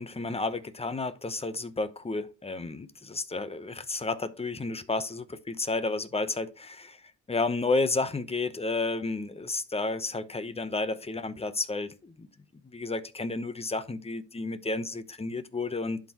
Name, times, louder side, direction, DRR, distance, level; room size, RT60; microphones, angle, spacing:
voice 1, 0.0-12.3 12.6-16.0, left 3 dB, 20° left, 0.9 m, -31 dB
11.5 x 4.5 x 3.0 m
cardioid pair, 90°, 30 cm